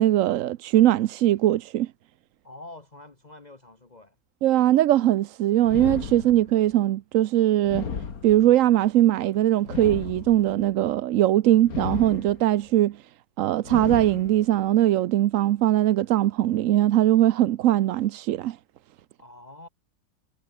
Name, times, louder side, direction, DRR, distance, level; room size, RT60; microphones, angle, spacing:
voice 1, 0.0-1.9 4.4-7.9 8.2-13.0 13.4-18.6, right 13 dB, 65° right, 0.9 m, -21 dB
voice 2, 2.4-4.2 19.2-19.7, left 2 dB, 25° left, 1.8 m, -46 dB
sound 1, 5.6-6.7 7.6-8.7 9.6-10.7 11.6-12.7 13.6-14.7, left 6 dB, 65° left, 2.3 m, -34 dB
omnidirectional pair, 1.6 m